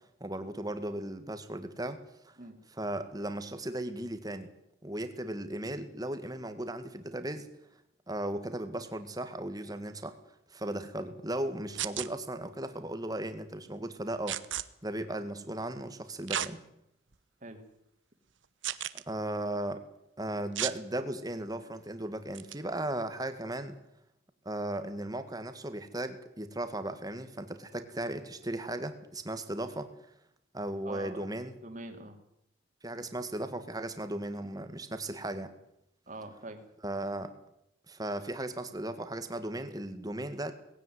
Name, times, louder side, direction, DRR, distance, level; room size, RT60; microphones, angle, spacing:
voice 1, 0.2-2.0 2.2-2.3 2.7-4.5 4.8-7.5 8.1-10.2 10.5-14.4 14.8-16.6 18.9-19.8 20.2-23.7 24.5-29.9 30.5-31.5 32.8-35.5 36.8-37.3 37.9-40.5, right 1 dB, 20° right, 9 dB, 1.8 m, -36 dB
sound 1, 11.8-12.1 14.3-14.6 16.3-16.5 17.1-17.2 18.6-19.0 20.6-20.8 22.4-22.6, right 11 dB, 70° right, 1.0 m, -33 dB
voice 2, 30.8-31.4 31.6-32.2 36.1-36.6, right 2 dB, 40° right, 5 dB, 2.9 m, -44 dB
19.5 x 16.5 x 9.5 m, 0.80 s
head